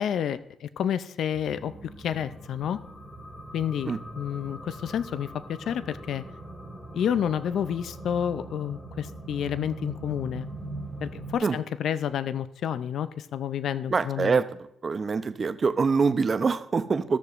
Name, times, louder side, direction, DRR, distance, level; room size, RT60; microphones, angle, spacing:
voice 1, 0.0-2.8 3.5-6.2 6.9-10.5 11.0-14.4, left 9 dB, 70° left, 14 dB, 0.4 m, -30 dB
sound 1, 1.3-11.3, right 1 dB, 15° left, 1.6 m, -41 dB
voice 2, 13.9-14.5 14.8-17.2, right 5 dB, 35° right, 11 dB, 0.5 m, -24 dB
14.5 x 6.7 x 2.5 m, 0.75 s
cardioid pair, 90°, 0 cm